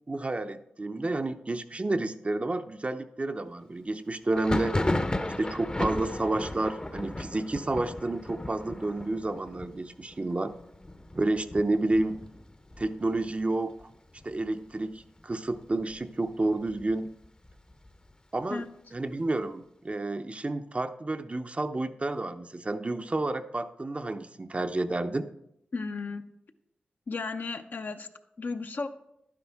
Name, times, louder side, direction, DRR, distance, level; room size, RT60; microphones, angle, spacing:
voice 1, 0.1-4.8 5.4-10.5 11.1-12.2 12.8-13.9 14.2-17.1 18.3-18.6 18.9-25.3, right 2 dB, 35° right, 9 dB, 0.6 m, -30 dB
Thunder, 4.3-13.8 14.1-14.8 15.0-16.0 16.4-18.1, left 1 dB, 25° left, 0.7 m, -35 dB
voice 2, 25.7-26.2 27.1-28.1 28.4-28.9, left 4 dB, 60° left, 7 dB, 0.7 m, -34 dB
11.0 x 9.7 x 3.5 m, 0.82 s
cardioid pair, 45°, 4 cm